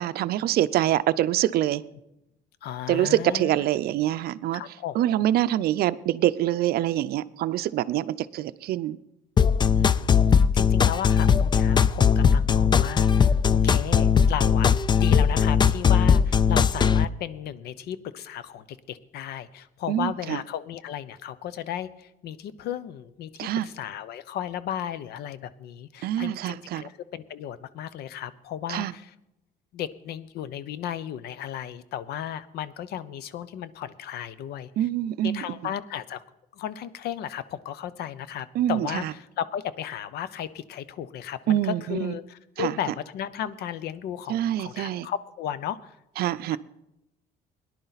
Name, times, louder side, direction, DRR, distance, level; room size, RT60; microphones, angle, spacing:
voice 1, 0.0-1.8 2.9-4.6 4.9-9.0 19.9-20.4 23.4-23.7 26.0-26.9 28.7-28.9 34.8-35.6 38.5-39.1 41.5-42.2 42.6-42.8 44.3-45.1 46.2-46.6, right 13 dB, 65° right, 0.5 m, -25 dB
voice 2, 2.6-3.5 4.5-5.0 9.7-29.1 29.7-34.7 35.2-36.2 36.5-45.9, left 10 dB, 70° left, 0.7 m, -35 dB
sound 1, 9.4-17.0, left 7 dB, 25° left, 0.4 m, -19 dB
18.5 x 10.5 x 4.0 m
cardioid pair, 110°, 17 cm